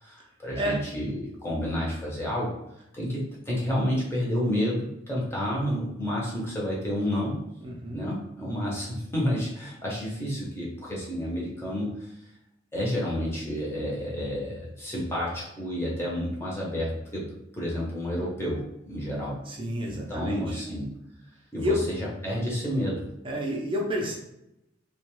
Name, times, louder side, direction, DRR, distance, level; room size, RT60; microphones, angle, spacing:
voice 1, 0.0-2.5 2.9-7.4 7.9-12.1 12.7-17.3 17.5-19.4 19.8-20.9 21.5-23.0, equal, 15° left, -5 dB, 0.7 m, -30 dB
voice 2, 7.6-8.0 19.5-20.6 21.6-21.9 23.2-24.1, left 1 dB, 25° right, -1 dB, 0.5 m, -29 dB
2.4 x 2.2 x 3.0 m, 0.85 s
head